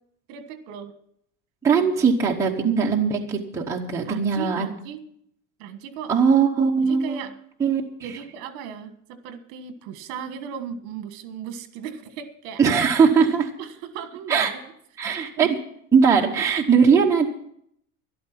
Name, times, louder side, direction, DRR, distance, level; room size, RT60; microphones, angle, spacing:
voice 1, 0.3-0.9 1.7-1.8 4.0-5.0 5.6-6.1 6.8-7.4 8.0-12.6 13.6-14.5 15.0-15.5, right 7 dB, 60° right, 10 dB, 1.5 m, -36 dB
voice 2, 1.6-4.6 6.1-7.2 7.6-8.1 12.6-13.5 14.3-14.5 15.0-15.5 15.9-17.3, right 6 dB, 10° right, -2 dB, 1.0 m, -20 dB
12.5 x 12.0 x 5.9 m, 0.68 s
cardioid pair, 180°, 38 cm